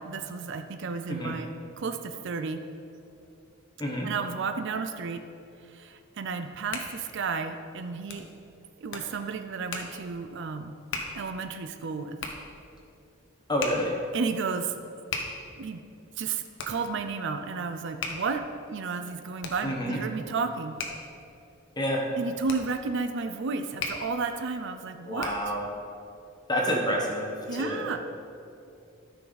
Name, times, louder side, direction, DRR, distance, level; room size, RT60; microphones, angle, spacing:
voice 1, 0.0-2.6 4.0-5.2 5.6-8.3 8.8-10.8 11.1-12.2 14.1-14.7 15.6-15.8 16.2-18.4 18.7-20.8 22.2-25.6 27.5-28.0, right 4 dB, 60° right, 8 dB, 0.5 m, -32 dB
Hands, 6.4-25.6, left 4 dB, 60° left, 1.1 m, -41 dB
voice 2, 13.5-13.9 19.6-20.0 21.8-22.0 25.1-25.6 26.5-27.9, equal, 20° left, -1 dB, 1.3 m, -28 dB
13.5 x 5.9 x 4.1 m, 2.6 s
head